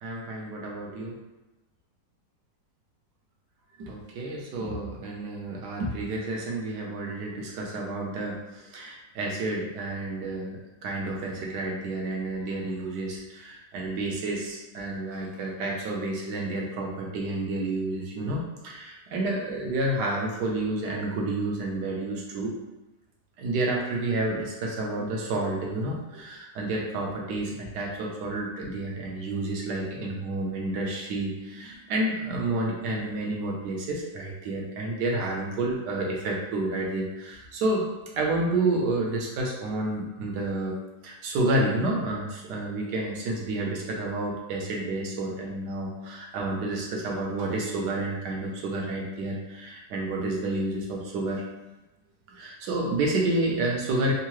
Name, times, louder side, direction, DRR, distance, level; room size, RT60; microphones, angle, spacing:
voice 1, 0.0-1.2 3.8-22.5 23.4-37.9 38.2-40.8 41.0-51.4 52.3-54.1, right 2 dB, 70° right, -1 dB, 1.2 m, -30 dB
3.6 x 2.0 x 3.0 m, 1.0 s
omnidirectional pair, 2.0 m